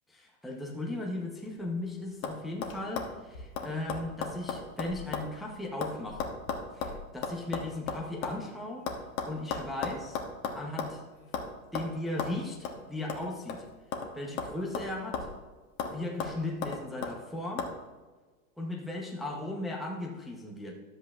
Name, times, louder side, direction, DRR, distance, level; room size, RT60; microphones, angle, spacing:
voice 1, 0.1-6.3 6.7-8.9 9.3-10.2 10.5-11.0 11.7-13.6 14.1-15.3 15.9-17.7 18.6-20.7, left 2 dB, ahead, -1 dB, 0.7 m, -37 dB
sound 1, 1.5-1.8 2.2-2.4 2.6-5.3 5.6-8.4 8.9-11.0 11.3-11.5 11.7-11.9 12.2-12.3 12.6-12.8 13.1-14.1 14.4-15.4 15.8-15.9 16.2-17.1 17.6-17.7, left 5 dB, 65° left, 1.3 m, -35 dB
12.0 x 8.0 x 2.4 m, 1.3 s
supercardioid pair, 145°, 43 cm